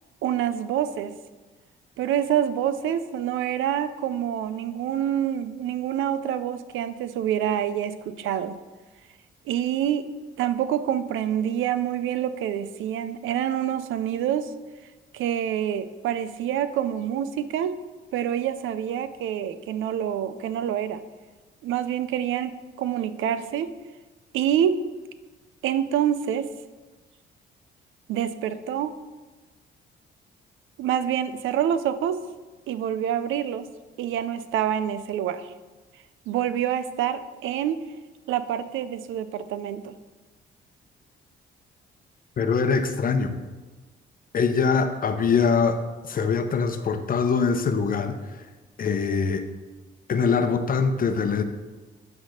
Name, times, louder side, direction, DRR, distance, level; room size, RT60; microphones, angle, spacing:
voice 1, 0.2-1.1 2.0-8.5 9.5-10.1 10.4-14.5 15.1-17.8 18.1-21.0 21.6-22.5 22.8-23.7 24.3-24.8 25.6-26.5 28.1-28.9 30.8-32.2 32.7-33.7 34.0-35.5 36.3-37.8 38.3-39.9, right 10 dB, 85° right, 13 dB, 0.5 m, -26 dB
voice 2, 42.4-43.3 44.3-45.8 46.1-48.2 48.8-49.4 50.1-51.4, left 5 dB, 45° left, 8 dB, 0.8 m, -23 dB
8.8 x 3.5 x 6.4 m, 1.2 s
cardioid pair, 90°, 20 cm